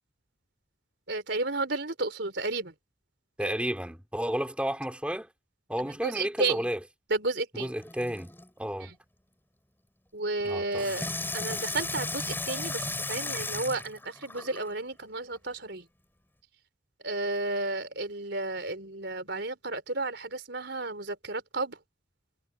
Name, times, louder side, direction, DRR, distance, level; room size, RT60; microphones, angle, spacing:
voice 1, 1.1-2.7 3.4-3.6 5.8-6.6 7.1-7.8 8.8-9.0 10.1-15.9 17.0-21.8, right 2 dB, 60° right, 4.6 m, -32 dB
voice 2, 3.4-5.3 5.7-6.8 7.5-8.3 8.6-8.9 10.4-10.6, equal, 5° right, 4.2 m, -31 dB
Water tap faucet / Sink (filling or washing), 7.8-8.5 10.8-14.7 15.4-15.5, left 3 dB, 10° left, 6.6 m, -35 dB
head